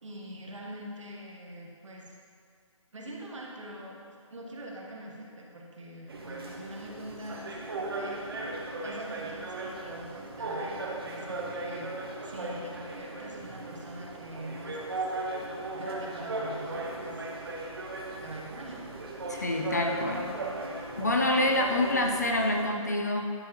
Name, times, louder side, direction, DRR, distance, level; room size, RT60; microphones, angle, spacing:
voice 1, 0.0-2.1 2.9-4.0 4.3-7.5 7.8-8.2 8.8-11.9 12.2-15.1 15.7-17.3 18.2-18.8, right 1 dB, 65° right, -2 dB, 1.3 m, -43 dB
sound 1, 6.1-22.7, right 2 dB, 45° right, 0.8 m, -37 dB
voice 2, 19.3-20.4 21.0-23.3, left 1 dB, 30° left, 2 dB, 0.4 m, -27 dB
9.4 x 4.5 x 3.0 m, 2.2 s
hypercardioid pair, 165°, 17 cm